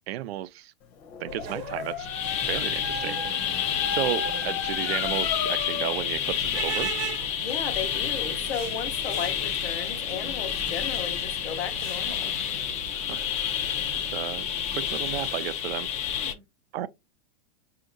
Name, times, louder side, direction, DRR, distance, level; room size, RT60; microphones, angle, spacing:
voice 1, 0.1-0.7 1.2-2.1 2.5-3.2 3.6-6.9 12.9-13.7 14.1-14.5 14.7-15.9 16.7-16.9, right 13 dB, 80° right, 0.5 m, -33 dB
Dog, 1.0-6.1, left 6 dB, 50° left, 0.9 m, -35 dB
sound 1, 1.3-15.3, right 8 dB, 60° right, 0.8 m, -41 dB
sound 2, 2.0-16.3, left 9 dB, 25° left, 0.3 m, -29 dB
voice 2, 7.4-12.3 16.2-16.4, left 7 dB, 85° left, 1.0 m, -35 dB
5.1 x 2.8 x 2.5 m
supercardioid pair, 135°, 31 cm